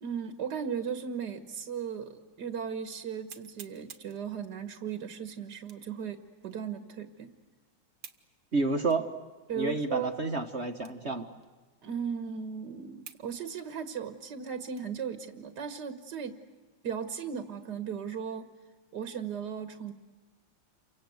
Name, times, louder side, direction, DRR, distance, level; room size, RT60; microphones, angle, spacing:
voice 1, 0.0-7.3 9.5-10.2 11.8-16.4 16.8-18.5 18.9-19.9, right 7 dB, 55° right, 8 dB, 1.9 m, -36 dB
sound 1, 1.9-2.0 2.5-2.6 3.3-4.2 5.6-6.0 6.5-6.6 8.0-8.3 8.9-9.0 9.7-9.8 10.8-11.1 11.4-11.5 12.2-12.3 13.1-13.3 13.6-15.1 15.6-15.7 16.2-16.6, right 7 dB, 75° right, 2.2 m, -51 dB
voice 2, 8.5-9.1 9.5-11.3, right 3 dB, 35° right, 6 dB, 1.4 m, -30 dB
29.5 x 25.0 x 7.9 m, 1.3 s
omnidirectional pair, 2.3 m